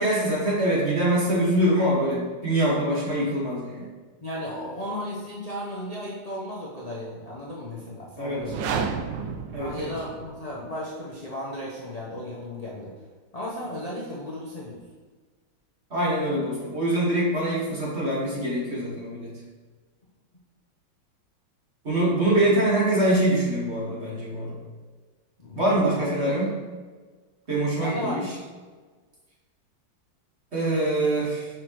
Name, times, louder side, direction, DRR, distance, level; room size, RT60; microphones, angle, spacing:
voice 1, 0.0-3.9 8.2-8.4 9.5-9.9 15.9-19.3 21.8-24.6 25.6-26.5 27.5-28.3 30.5-31.5, right 1 dB, 35° right, -6 dB, 1.8 m, -24 dB
voice 2, 4.2-8.6 9.6-12.9 13.3-14.8 22.4-22.5 25.4-26.4 27.8-28.3, left 1 dB, 35° left, -6 dB, 0.5 m, -35 dB
sound 1, 8.3-10.5, right 6 dB, 75° right, 1.2 m, -31 dB
6.3 x 5.5 x 3.1 m, 1.4 s
omnidirectional pair, 2.3 m